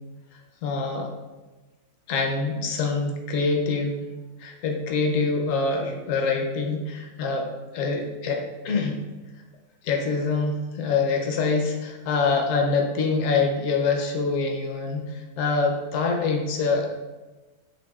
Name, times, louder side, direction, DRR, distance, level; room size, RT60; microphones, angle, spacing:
voice 1, 0.6-1.1 2.1-4.0 4.4-7.5 7.7-9.0 9.8-16.9, left 4 dB, 65° left, 2 dB, 0.9 m, -25 dB
5.5 x 2.6 x 2.3 m, 1.2 s
omnidirectional pair, 1.6 m